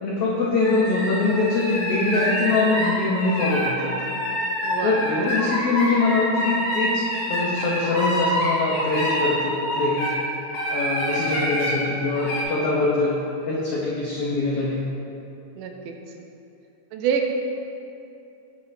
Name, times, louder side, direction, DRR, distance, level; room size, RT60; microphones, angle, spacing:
voice 1, 0.0-3.9 4.8-7.0 7.3-10.2 10.7-13.2 13.4-14.8, left 3 dB, 90° left, -5 dB, 1.3 m, -23 dB
sound 1, 0.6-10.2 10.5-11.7 12.2-12.4, equal, 60° left, 2.0 m, -26 dB
voice 2, 4.6-5.0 5.3-5.6 15.6-15.9 16.9-17.3, right 7 dB, 90° right, 3 dB, 2.3 m, -27 dB
8.2 x 7.3 x 2.6 m, 2.8 s
omnidirectional pair, 3.7 m